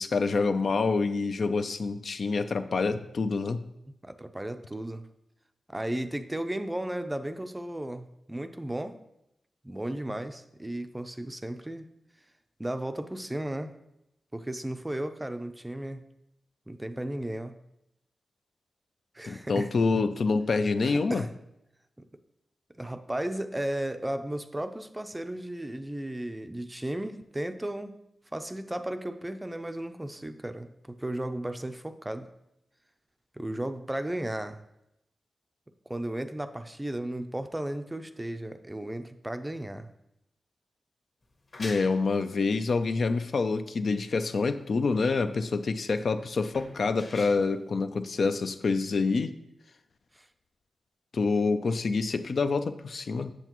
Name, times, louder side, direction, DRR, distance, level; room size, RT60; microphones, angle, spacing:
voice 1, 0.0-3.7 19.3-21.3 41.6-49.3 51.1-53.3, left 4 dB, 60° left, 9 dB, 0.4 m, -27 dB
voice 2, 4.0-5.1 5.7-9.0 9.6-11.9 12.6-13.8 14.3-16.0 16.7-17.6 19.1-19.7 20.8-21.3 22.0-22.1 22.8-28.0 28.3-32.3 33.4-34.6 35.9-39.9 50.1-50.3, right 1 dB, 15° right, 9 dB, 0.4 m, -35 dB
sound 1, 41.2-48.6, left 2 dB, 45° left, 1.3 m, -48 dB
7.9 x 7.0 x 3.0 m, 0.83 s
wide cardioid pair, 100°, 0 cm